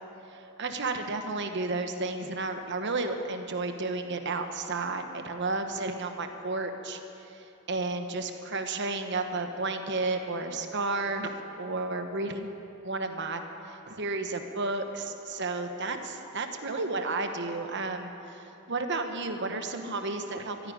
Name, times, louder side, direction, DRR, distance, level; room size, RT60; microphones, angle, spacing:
voice 1, 0.3-7.0 7.3-12.6 12.8-20.7, right 3 dB, 55° right, 6 dB, 1.1 m, -32 dB
13.5 x 10.5 x 9.6 m, 2.9 s
head